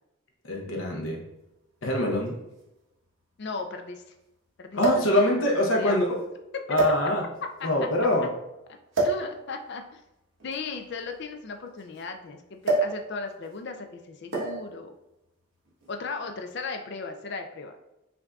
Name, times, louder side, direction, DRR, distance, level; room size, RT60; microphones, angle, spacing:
voice 1, 0.4-1.2 1.8-2.3 4.7-6.2 6.7-7.2 7.6-8.3, left 1 dB, 70° left, 0 dB, 0.8 m, -24 dB
sound 1, 1.1-1.2 2.2-2.3 2.6-2.7 4.8-5.2 6.0-6.2 6.7-7.4 8.9-9.3 10.4-12.0 12.6-13.0 13.3-13.6 14.3-14.7 15.7-15.9, right 3 dB, 65° right, 1.1 m, -27 dB
voice 2, 3.4-4.1 4.6-6.0 7.6-8.3 9.0-10.0 10.4-14.9 15.9-17.8, left 4 dB, 50° left, 5 dB, 0.4 m, -37 dB
5.8 x 2.6 x 2.3 m, 0.92 s
head